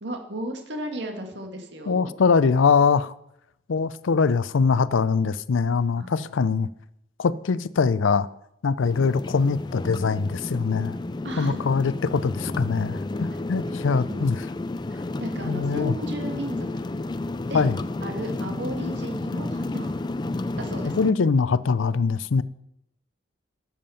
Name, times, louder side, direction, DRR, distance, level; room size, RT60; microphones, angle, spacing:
voice 1, 0.0-2.1 5.9-6.3 11.2-11.6 13.6-13.8 14.1-14.3 14.9-16.7 17.5-17.6 18.0-19.9 20.6-21.0, equal, 65° right, 1.9 m, -34 dB
voice 2, 1.9-3.1 3.7-6.7 7.2-8.3 8.6-11.0 11.4-14.4 15.4-15.9 17.5-17.8 21.0-22.4, left 5 dB, 85° left, 0.5 m, -22 dB
sound 1, 8.8-21.1, left 2 dB, 20° left, 0.4 m, -31 dB
12.5 x 7.3 x 5.7 m
head